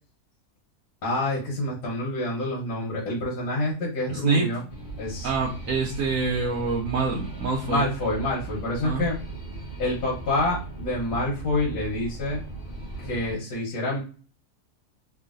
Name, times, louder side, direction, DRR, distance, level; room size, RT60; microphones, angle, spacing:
voice 1, 1.0-4.6 5.0-5.3 7.7-9.2 9.8-12.4 13.0-14.0, left 1 dB, 90° left, -4 dB, 1.5 m, -27 dB
voice 2, 4.1-4.5 5.2-7.8 8.8-9.0, right 4 dB, 70° right, -1 dB, 0.9 m, -26 dB
sound 1, 4.7-13.4, right 3 dB, 40° left, 1.0 m, -37 dB
3.1 x 2.4 x 2.5 m, 0.37 s
omnidirectional pair, 1.7 m